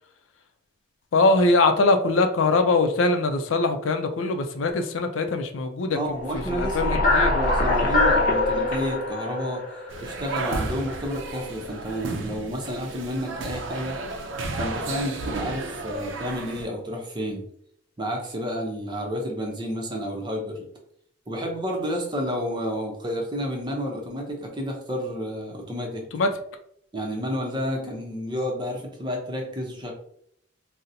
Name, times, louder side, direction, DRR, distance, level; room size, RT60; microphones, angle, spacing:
voice 1, 1.1-7.3 26.1-26.3, left 3 dB, 80° left, 6 dB, 0.4 m, -22 dB
voice 2, 5.9-9.6 10.0-14.0 14.5-17.5 18.0-20.7 21.3-26.0 26.9-29.9, equal, 25° right, 1 dB, 0.6 m, -30 dB
sound 1, 6.3-10.6, left 2 dB, 45° left, 0.7 m, -23 dB
sound 2, 9.9-16.7, right 3 dB, 75° right, 0.5 m, -33 dB
3.9 x 2.1 x 2.6 m, 0.69 s
head